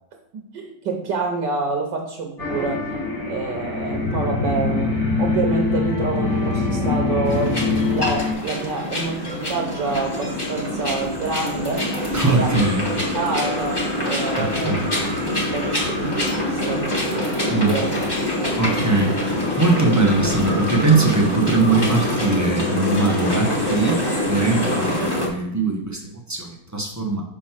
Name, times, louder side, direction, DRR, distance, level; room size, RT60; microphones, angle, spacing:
voice 1, 0.3-2.9 3.3-12.6 13.1-15.1 15.4-18.1 18.7-19.0, right 3 dB, 70° right, 2 dB, 1.5 m, -28 dB
sound 1, 2.4-8.3, left 4 dB, 45° left, 3.0 m, -25 dB
sound 2, 3.2-8.2, left 1 dB, 65° left, 1.5 m, -26 dB
sound 3, 7.2-25.3, left 1 dB, 15° left, 1.4 m, -25 dB
voice 2, 12.1-12.8 14.4-14.9 17.5-17.8 18.6-19.2 19.6-24.0 24.3-27.2, right 3 dB, 25° right, -1 dB, 0.4 m, -21 dB
5.6 x 5.1 x 5.7 m, 0.78 s
omnidirectional pair, 2.2 m